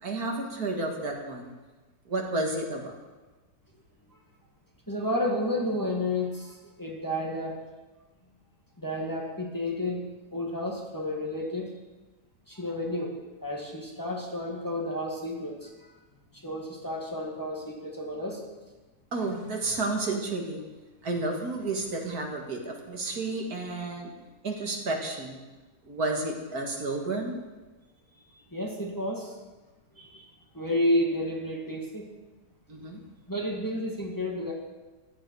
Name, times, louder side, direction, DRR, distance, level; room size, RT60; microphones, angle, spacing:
voice 1, 0.0-1.5 2.1-2.9 19.1-20.6 21.0-24.1 24.4-25.4 25.9-27.4 32.7-33.0, right 2 dB, 75° right, 1 dB, 2.4 m, -31 dB
voice 2, 4.9-7.6 8.8-11.7 12.5-13.1 13.4-15.7 16.3-18.5 28.5-29.4 30.0-30.3 30.5-32.1 33.3-34.5, left 1 dB, 10° left, -2 dB, 2.0 m, -31 dB
14.5 x 12.5 x 4.8 m, 1.2 s
omnidirectional pair, 1.6 m